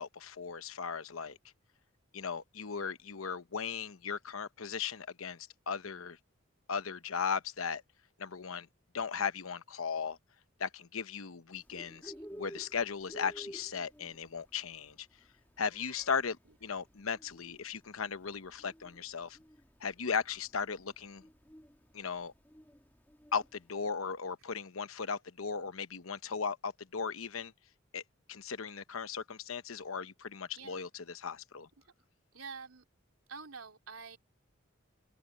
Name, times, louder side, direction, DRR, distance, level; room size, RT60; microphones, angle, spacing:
voice 1, 0.0-1.4 2.1-6.2 6.7-7.8 8.2-8.7 8.9-10.2 10.6-15.1 15.6-19.4 19.8-21.2 21.9-22.3 23.3-27.5 27.9-28.0 28.3-31.7, left 6 dB, 85° left, 0.9 m, -37 dB
Bird, 11.5-23.7, equal, 10° left, 1.9 m, -53 dB
voice 2, 32.3-32.8 33.3-34.2, right 5 dB, 90° right, 3.7 m, -47 dB
open air
head